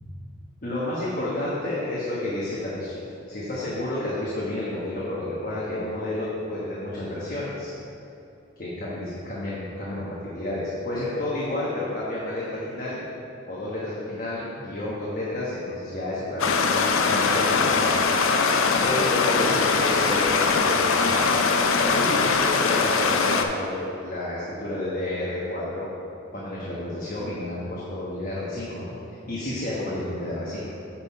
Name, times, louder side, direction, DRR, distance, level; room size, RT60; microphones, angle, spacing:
voice 1, 0.6-3.0 3.3-7.7 8.6-13.0 13.5-17.9 18.8-21.4 21.8-25.9 26.3-28.9 29.3-30.8, left 1 dB, 45° left, -7 dB, 1.2 m, -30 dB
Stream, 16.4-23.4, left 4 dB, 85° left, 0.5 m, -21 dB
8.8 x 3.8 x 5.6 m, 2.7 s
head